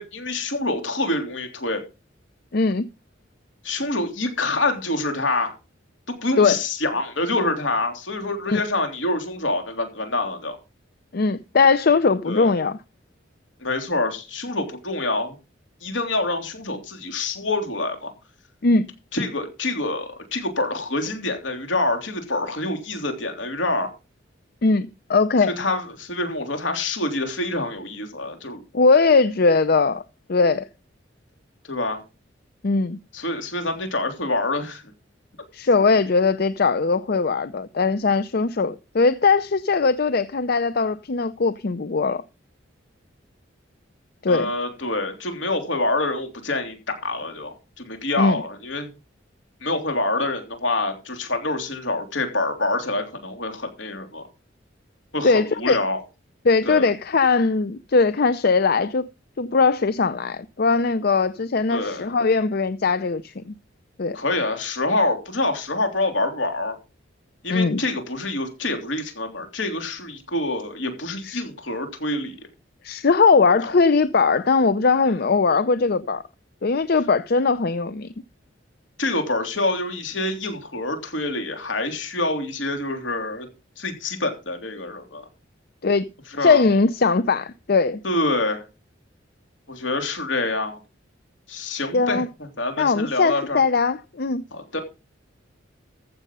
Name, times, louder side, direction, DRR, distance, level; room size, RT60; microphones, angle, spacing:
voice 1, 0.0-1.8 3.6-5.6 6.2-10.6 12.3-12.5 13.6-15.4 15.8-18.1 19.1-23.9 25.4-28.6 31.7-32.0 33.1-34.8 44.3-48.9 49.6-54.2 55.1-56.0 56.6-56.9 61.7-62.1 64.1-66.8 67.4-72.4 73.6-73.8 79.0-83.5 83.8-85.2 86.3-86.6 88.0-88.6 89.7-90.8 91.5-92.2 92.6-93.6 94.5-94.8, left 2 dB, 70° left, 3.3 m, -26 dB
voice 2, 2.5-2.9 6.4-6.6 8.5-8.6 11.1-12.8 18.6-18.9 24.6-25.5 28.7-30.0 30.3-30.7 32.6-33.0 35.5-42.2 44.2-44.5 48.2-48.4 55.2-55.8 56.4-59.1 59.4-63.5 64.0-64.2 67.5-67.8 71.2-71.4 72.8-76.2 76.6-78.1 85.8-86.1 86.4-88.0 91.9-92.3 92.8-94.4, left 4 dB, 50° left, 0.5 m, -20 dB
14.5 x 6.7 x 5.5 m
head